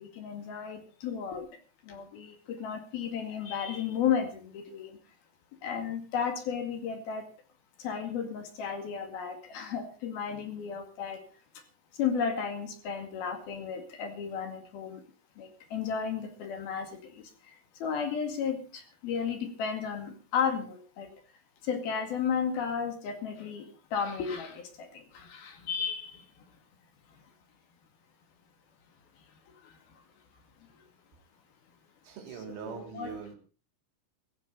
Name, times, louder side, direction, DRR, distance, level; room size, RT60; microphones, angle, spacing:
voice 1, 0.0-1.5 1.8-5.0 5.6-7.3 7.8-11.2 12.0-15.0 15.4-17.6 17.8-21.1 21.6-26.3 29.6-29.8 32.6-33.1, left 7 dB, 60° left, 3.7 m, -34 dB
voice 2, 32.0-33.4, right 7 dB, 85° right, 6.0 m, -41 dB
17.0 x 15.0 x 4.0 m
omnidirectional pair, 5.5 m